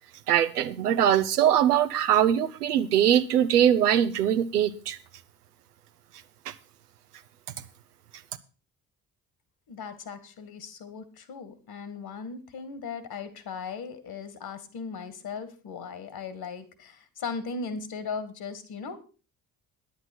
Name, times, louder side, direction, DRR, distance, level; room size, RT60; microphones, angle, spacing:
voice 1, 0.3-5.0 6.5-6.6, right 10 dB, 85° right, 11 dB, 0.8 m, -22 dB
voice 2, 9.7-19.0, left 5 dB, 55° left, 13 dB, 1.9 m, -38 dB
10.5 x 8.2 x 6.1 m, 0.36 s
figure-of-eight pair, 45°, 45 cm